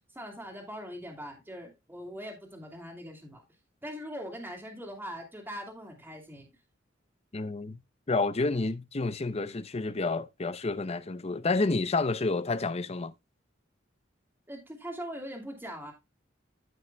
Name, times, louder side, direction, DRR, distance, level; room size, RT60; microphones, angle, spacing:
voice 1, 0.1-3.4 3.8-6.5 14.5-15.9, equal, 10° right, 2.4 m, -41 dB
voice 2, 7.3-7.8 8.1-13.1, left 3 dB, 35° left, 0.6 m, -29 dB
15.0 x 5.8 x 2.2 m
head